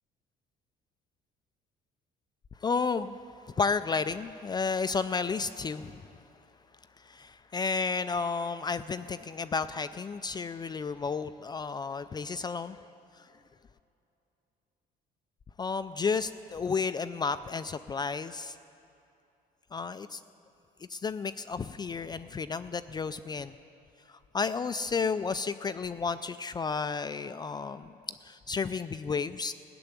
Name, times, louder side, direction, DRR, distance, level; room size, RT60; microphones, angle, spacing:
voice 1, 2.6-3.2 3.5-6.1 7.0-12.8 13.2-13.3 15.6-18.6 19.7-20.2 20.9-23.6 24.1-27.9 28.2-29.5, left 5 dB, 25° left, 12 dB, 0.3 m, -32 dB
16.0 x 6.9 x 9.7 m, 2.7 s
cardioid pair, 110°, 17 cm